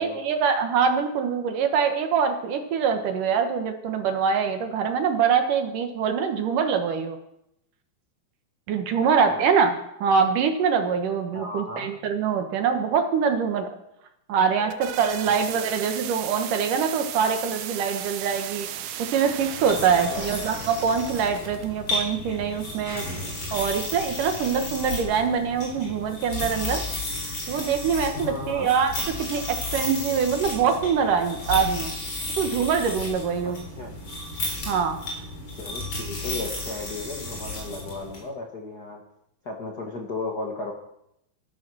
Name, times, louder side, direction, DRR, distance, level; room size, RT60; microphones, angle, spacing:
voice 1, 0.0-7.2 8.7-9.7 10.0-13.7 14.3-18.7 19.0-23.0 23.5-26.8 27.5-28.9 29.2-32.0 32.4-33.6 34.7-35.0, right 6 dB, 65° right, 6 dB, 2.7 m, -24 dB
voice 2, 11.3-11.9 15.2-15.7 20.1-20.3 28.1-28.7 33.4-34.0 35.5-39.0 39.4-40.7, left 3 dB, 55° left, 1 dB, 1.0 m, -35 dB
sound 1, 14.4-21.7, right 11 dB, 80° right, 1.5 m, -36 dB
sound 2, 19.4-38.2, left 2 dB, 35° left, 4.6 m, -33 dB
13.5 x 12.0 x 6.2 m, 0.79 s
omnidirectional pair, 4.4 m